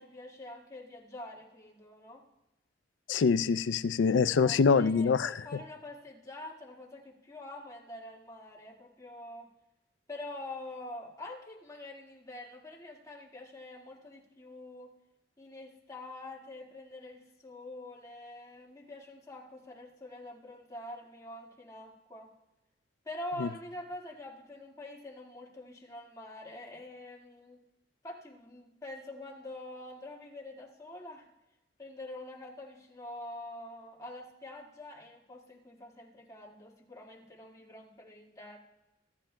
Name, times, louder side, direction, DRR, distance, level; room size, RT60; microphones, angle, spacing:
voice 1, 0.0-2.2 4.4-9.5 10.1-14.9 15.4-22.3 23.0-27.6 28.0-31.3 31.8-38.6, left 1 dB, 20° left, -3 dB, 1.8 m, -45 dB
voice 2, 3.1-5.3 23.4-23.5, left 5 dB, 75° left, 14 dB, 0.4 m, -25 dB
22.5 x 11.5 x 2.2 m, 0.96 s
head